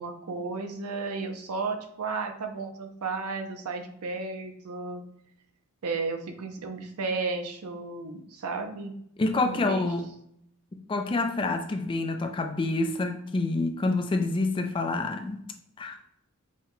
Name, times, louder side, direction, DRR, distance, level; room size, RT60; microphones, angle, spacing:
voice 1, 0.0-5.0 5.8-8.9 9.4-9.9, right 4 dB, 85° right, 0.6 m, -33 dB
voice 2, 9.2-10.1 10.7-15.4 15.8-16.0, left 2 dB, 25° left, 0.3 m, -27 dB
5.6 x 2.2 x 3.0 m
head